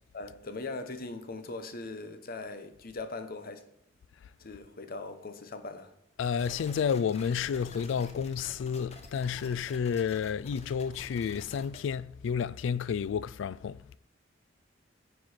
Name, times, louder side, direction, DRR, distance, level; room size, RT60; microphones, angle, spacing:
voice 1, 0.1-3.6 4.4-5.9, left 3 dB, 50° left, 0.9 m, -40 dB
voice 2, 6.2-14.0, left 7 dB, 70° left, 0.3 m, -31 dB
sound 1, 6.4-11.8, left 3 dB, 35° left, 1.1 m, -49 dB
9.5 x 4.5 x 4.3 m
head